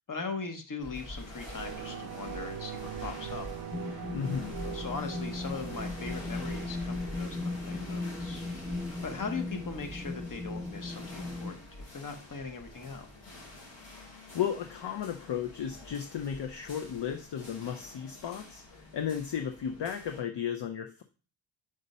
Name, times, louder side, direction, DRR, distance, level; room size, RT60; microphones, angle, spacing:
voice 1, 0.1-3.5 4.6-8.7 9.0-11.7 11.9-13.1, left 4 dB, 40° left, 6 dB, 1.0 m, -40 dB
sound 1, 0.8-20.2, left 1 dB, 90° left, 3.6 m, -47 dB
sound 2, 1.3-10.3 10.7-10.8, right 9 dB, 50° right, 0.5 m, -44 dB
sound 3, 3.7-11.5, left 2 dB, 10° right, 0.7 m, -37 dB
voice 2, 4.1-4.6 14.3-18.6 18.9-21.0, left 8 dB, 60° left, 5 dB, 0.6 m, -34 dB
5.2 x 4.0 x 5.4 m, 0.37 s
wide cardioid pair, 120°, 48 cm